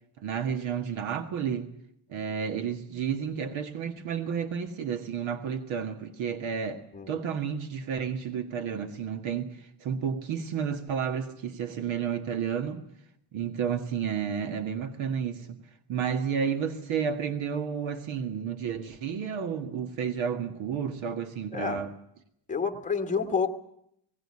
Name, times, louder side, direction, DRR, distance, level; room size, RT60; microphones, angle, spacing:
voice 1, 0.2-1.7 2.1-12.8 13.3-15.6 15.9-21.9, right 7 dB, 80° right, 1.9 m, -31 dB
voice 2, 21.5-21.8 22.5-23.5, left 5 dB, 15° left, 1.4 m, -29 dB
18.5 x 17.5 x 9.7 m
cardioid pair, 160°, 46 cm